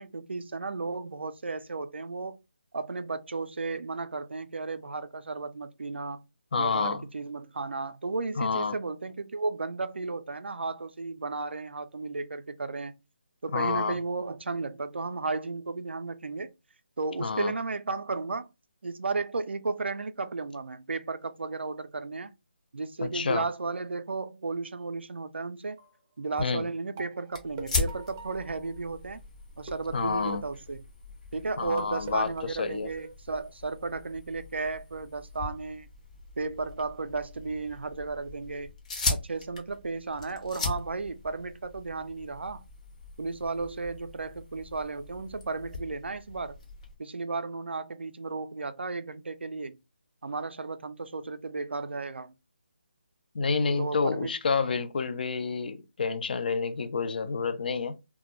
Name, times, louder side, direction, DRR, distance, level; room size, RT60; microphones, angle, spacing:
voice 1, 0.0-2.4 2.7-6.2 6.5-13.0 13.4-16.5 17.0-18.5 18.8-22.3 22.7-25.8 26.2-29.2 29.6-30.8 31.3-35.9 36.4-38.7 39.1-42.6 43.2-46.6 47.0-49.8 50.2-52.3 53.8-54.3, right 3 dB, 80° right, 0.4 m, -34 dB
voice 2, 6.5-7.0 8.4-8.8 13.5-14.0 17.2-17.5 23.0-23.5 26.4-26.7 29.9-30.4 31.6-32.9 53.3-57.9, left 5 dB, 55° left, 0.3 m, -29 dB
sound 1, 25.7-26.0 26.4-29.1 29.7-30.8 31.8-33.1, right 4 dB, 20° right, 0.5 m, -45 dB
sound 2, 27.3-46.9, left 3 dB, 40° left, 0.7 m, -39 dB
2.2 x 2.1 x 2.9 m
figure-of-eight pair, 160°, 6 cm